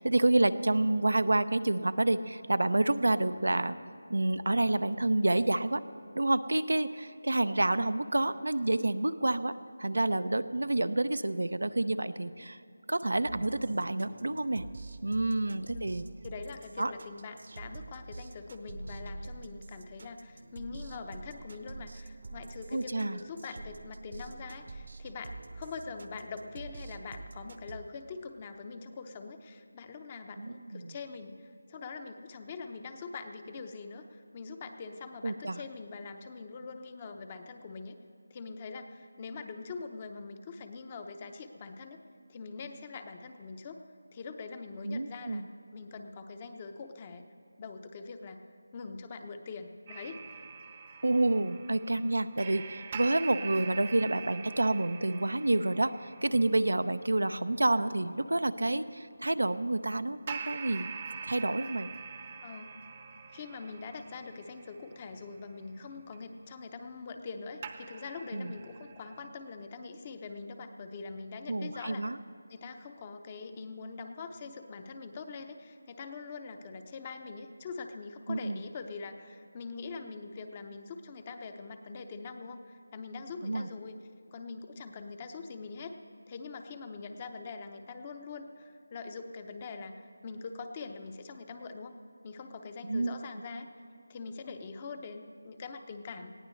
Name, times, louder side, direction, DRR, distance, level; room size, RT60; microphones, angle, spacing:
voice 1, 0.0-3.8 4.1-5.8 6.1-12.6 12.9-14.7 15.0-16.0 16.8-16.9 22.7-23.2 30.4-30.9 35.2-35.6 44.8-45.4 51.0-60.9 61.2-61.9 68.3-68.5 71.5-72.2 78.3-78.6 83.4-83.7 92.9-93.1, right 2 dB, 90° right, 12 dB, 0.6 m, -28 dB
sound 1, 13.3-27.8, right 3 dB, 55° right, 0.9 m, -46 dB
voice 2, 16.2-38.0 38.3-42.0 42.3-43.8 44.1-45.5 45.7-47.2 47.6-48.4 48.7-50.4 62.4-62.8 63.3-72.1 72.5-84.0 84.3-86.0 86.3-92.0 92.2-93.7 94.1-96.3, left 4 dB, 25° left, 7 dB, 0.7 m, -43 dB
sound 2, 49.9-58.6 60.3-67.4 67.6-69.3, right 6 dB, 30° right, 0.8 m, -45 dB
20.0 x 15.5 x 3.2 m, 2.7 s
figure-of-eight pair, 170°, 0 cm